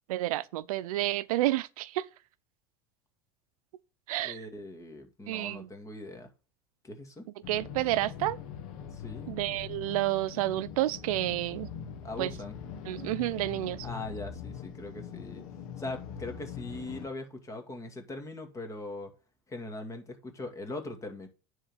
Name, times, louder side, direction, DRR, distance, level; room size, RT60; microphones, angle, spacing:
voice 1, 0.1-2.1 4.1-4.4 5.3-5.7 7.5-8.4 9.3-11.7 12.2-12.3 12.9-13.9, right 15 dB, 90° right, 0.6 m, -30 dB
voice 2, 4.2-6.3 6.8-7.3 8.9-9.4 12.0-12.6 13.8-15.4 15.8-19.1 19.5-21.3, left 2 dB, 15° left, 2.1 m, -41 dB
sound 1, 7.4-17.1, left 8 dB, 75° left, 1.5 m, -42 dB
9.9 x 3.9 x 7.1 m
supercardioid pair, 135°, 18 cm